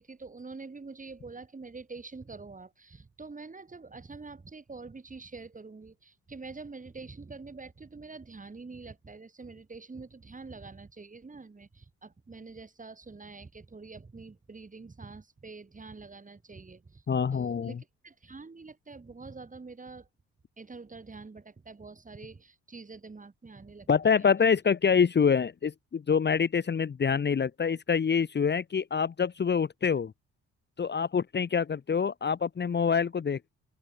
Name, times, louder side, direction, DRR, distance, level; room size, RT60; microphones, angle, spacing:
voice 1, 0.0-17.0 17.3-20.1 20.6-24.3, right 4 dB, 25° right, 7.5 m, -46 dB
voice 2, 17.1-17.8 23.9-30.1 30.8-33.5, left 6 dB, 35° left, 1.3 m, -26 dB
open air
cardioid pair, 90°, 30 cm